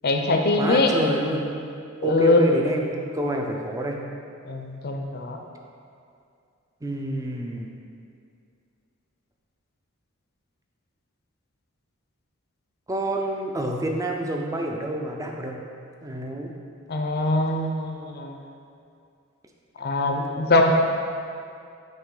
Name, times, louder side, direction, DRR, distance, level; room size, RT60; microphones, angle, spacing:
voice 1, 0.0-0.9 2.0-2.5 4.4-5.4 16.9-18.4 19.8-20.7, left 2 dB, 50° left, 2 dB, 0.6 m, -22 dB
voice 2, 0.6-1.6 2.0-2.9 3.1-4.0 6.8-7.7 12.9-15.6 16.0-16.5, right 1 dB, 15° right, 1 dB, 0.5 m, -27 dB
8.9 x 3.1 x 3.8 m, 2.4 s
head